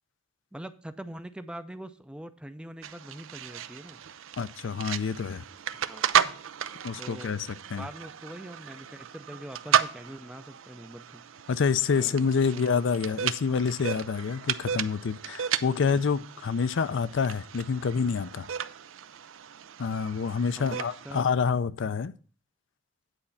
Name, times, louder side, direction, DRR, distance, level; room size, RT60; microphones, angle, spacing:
voice 1, 0.5-4.0 5.7-6.3 7.0-7.4 7.8-11.2 11.9-12.8 15.6-15.8 20.6-21.3, right 1 dB, 5° right, 0.5 m, -43 dB
sound 1, 2.8-21.2, right 9 dB, 80° right, 0.5 m, -33 dB
voice 2, 4.4-5.4 6.8-7.9 11.5-18.5 19.8-22.1, left 5 dB, 65° left, 0.4 m, -27 dB
9.0 x 4.3 x 7.0 m
head